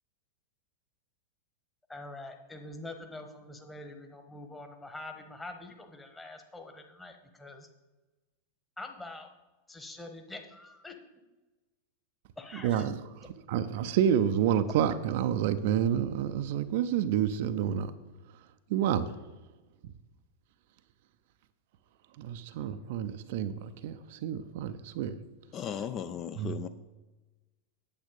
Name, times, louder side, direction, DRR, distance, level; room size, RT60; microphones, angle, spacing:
voice 1, 1.9-7.7 8.8-9.3 9.7-11.0 12.4-12.9 13.5-13.7, left 2 dB, 10° left, 1.2 m, -45 dB
voice 2, 12.6-13.0 13.5-17.9 18.7-19.1 22.2-25.1, right 9 dB, 50° right, 0.5 m, -29 dB
voice 3, 25.5-26.7, left 8 dB, 30° left, 0.4 m, -36 dB
8.8 x 7.8 x 5.2 m
figure-of-eight pair, 90°, 0 cm